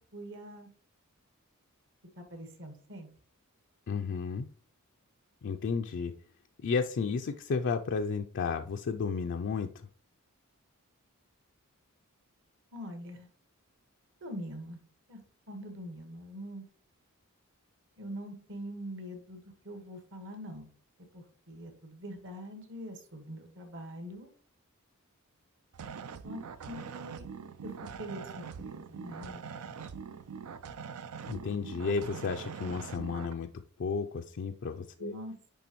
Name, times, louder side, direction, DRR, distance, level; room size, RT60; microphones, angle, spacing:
voice 1, 0.1-0.7 2.2-3.1 12.7-13.3 14.2-14.8 15.1-15.2 15.5-16.6 18.0-20.7 21.1-24.3 26.2-26.4 26.6-27.3 27.6-27.7 28.0-29.9 35.0-35.3, equal, 60° right, 5 dB, 1.4 m, -43 dB
voice 2, 3.9-4.5 5.4-6.1 6.6-9.9 31.3-33.5 33.8-35.1, left 5 dB, 55° left, 4 dB, 0.4 m, -32 dB
sound 1, 25.7-33.3, right 6 dB, 75° right, 0.5 m, -43 dB
10.0 x 3.4 x 3.0 m, 0.42 s
head